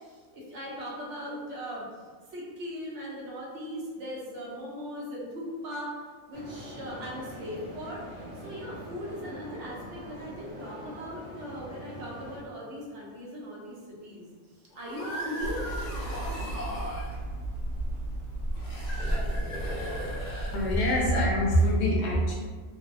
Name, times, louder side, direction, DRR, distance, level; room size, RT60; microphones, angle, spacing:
voice 1, 0.0-1.8 2.3-14.3 14.7-15.6, equal, 70° right, -4 dB, 0.9 m, -39 dB
sound 1, 6.3-12.4, equal, 45° right, 0.9 m, -43 dB
sound 2, 14.7-17.2 18.5-21.0, equal, 85° left, 0.3 m, -37 dB
Hammer, 15.4-21.8, right 1 dB, 10° left, 1.0 m, -34 dB
voice 2, 20.5-22.4, equal, 65° left, -4 dB, 0.8 m, -24 dB
2.6 x 2.0 x 2.3 m, 1.5 s
omnidirectional pair, 1.3 m